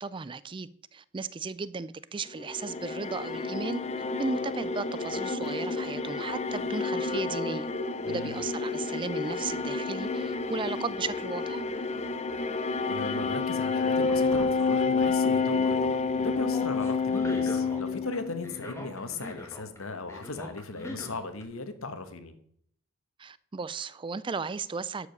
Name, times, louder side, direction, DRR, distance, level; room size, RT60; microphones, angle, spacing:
voice 1, 0.0-3.8 4.2-7.7 8.1-11.6 23.2-25.1, right 4 dB, 25° right, 0.3 m, -35 dB
sound 1, 2.4-18.7, left 4 dB, 30° left, 0.6 m, -29 dB
voice 2, 12.9-22.4, left 3 dB, 70° left, 1.2 m, -37 dB
sound 2, 14.1-15.5 15.8-17.8 18.1-19.8 20.1-21.4, left 1 dB, 15° left, 1.6 m, -41 dB
12.0 x 4.9 x 6.5 m
head